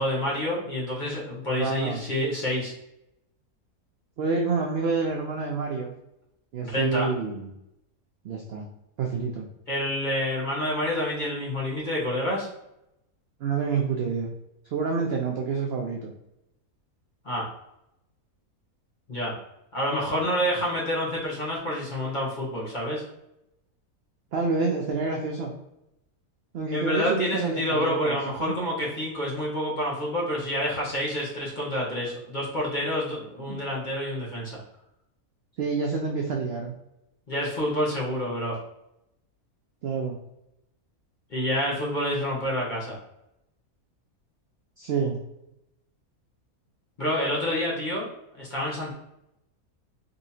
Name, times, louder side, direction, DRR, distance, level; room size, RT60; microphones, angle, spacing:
voice 1, 0.0-2.7 6.6-7.1 9.7-12.5 17.2-17.5 19.1-19.4 19.7-23.0 26.7-34.6 37.3-38.6 41.3-43.0 47.0-48.1 48.4-48.9, equal, 35° left, -5 dB, 1.0 m, -28 dB
voice 2, 1.6-2.0 4.2-5.9 6.5-7.5 8.2-8.7 9.0-9.5 13.4-14.3 14.7-16.1 24.3-25.5 26.5-28.5 33.4-33.6 35.6-36.7 39.8-40.2 44.8-45.2, right 4 dB, 70° right, 1 dB, 0.6 m, -28 dB
4.0 x 2.8 x 2.6 m, 0.84 s
omnidirectional pair, 1.6 m